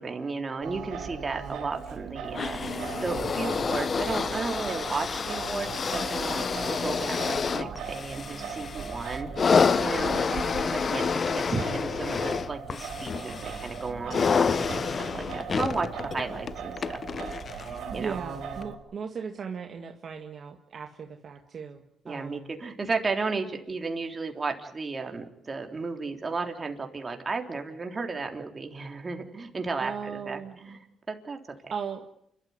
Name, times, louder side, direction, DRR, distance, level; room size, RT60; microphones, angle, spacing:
voice 1, 0.0-9.3 9.8-10.2 10.6-17.0 17.5-18.2 22.1-30.8 31.1-31.4 31.6-31.7, right 4 dB, 30° right, 4 dB, 3.6 m, -34 dB
Singing, 0.6-18.7, right 6 dB, 80° right, 4.4 m, -39 dB
sound 1, 2.3-17.8 18.6-18.7, left 5 dB, 40° left, 0.8 m, -29 dB
voice 2, 17.9-22.5 29.8-30.6 31.7-32.1, right 6 dB, 50° right, 4 dB, 1.9 m, -37 dB
29.0 x 13.0 x 9.8 m, 0.75 s
cardioid pair, 90°, 0 cm